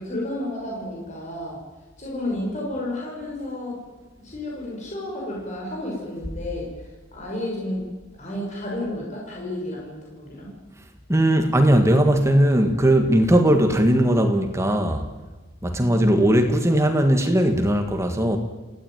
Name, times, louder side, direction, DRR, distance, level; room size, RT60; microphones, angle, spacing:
voice 1, 0.0-1.6 2.0-3.8 4.2-6.7 7.1-7.8 8.2-10.5, left 1 dB, 35° left, 6.6 m, -31 dB
voice 2, 11.1-15.1 15.6-18.4, right 1 dB, 15° right, 1.9 m, -19 dB
28.5 x 16.5 x 9.4 m
head